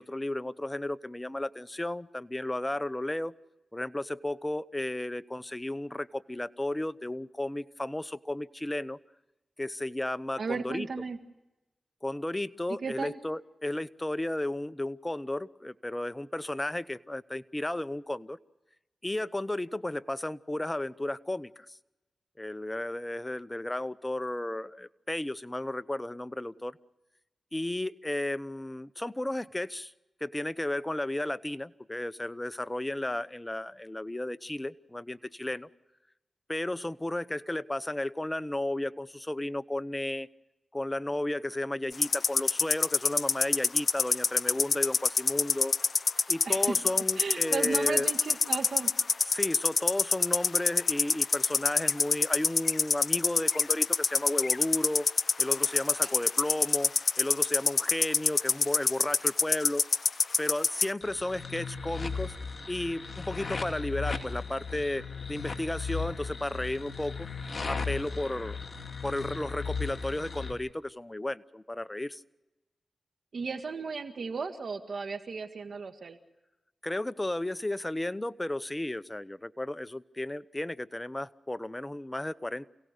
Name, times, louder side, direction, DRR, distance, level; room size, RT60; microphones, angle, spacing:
voice 1, 0.0-3.3 3.7-9.0 9.6-10.9 12.0-18.4 19.0-21.8 22.4-26.8 27.5-29.9 30.2-35.7 36.5-40.3 40.7-45.7 46.3-48.1 49.3-55.1 55.4-59.8 60.4-62.3 62.7-65.0 65.3-67.3 67.7-68.6 69.0-72.2 76.8-82.7, left 1 dB, 20° left, 14 dB, 0.9 m, -33 dB
voice 2, 10.4-11.2 12.7-13.2 46.5-46.8 47.2-48.9 56.0-56.1 73.3-76.2, right 5 dB, 75° right, 7 dB, 1.8 m, -35 dB
sound 1, 41.9-60.9, left 4 dB, 65° left, 0.7 m, -25 dB
sound 2, 61.0-70.5, left 5 dB, 50° left, 2.6 m, -36 dB
28.0 x 17.5 x 6.7 m, 1.0 s
cardioid pair, 45°, 0 cm